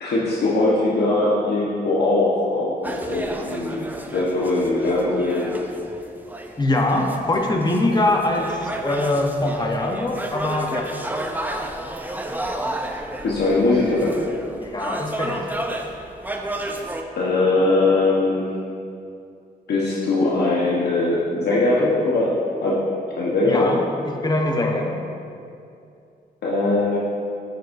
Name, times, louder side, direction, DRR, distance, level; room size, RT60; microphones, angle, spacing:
voice 1, 0.0-3.8 4.1-5.5 13.2-14.2 17.1-18.4 19.7-22.3 22.6-22.8 23.2-23.7 26.4-27.0, left 2 dB, 75° left, -6 dB, 1.1 m, -20 dB
sound 1, 2.8-17.0, right 1 dB, 10° right, 0.6 m, -32 dB
voice 2, 6.6-10.9 14.6-15.4 23.4-25.0, left 2 dB, 25° left, 1 dB, 0.9 m, -23 dB
8.8 x 6.6 x 2.6 m, 2.5 s
cardioid pair, 80°, 17 cm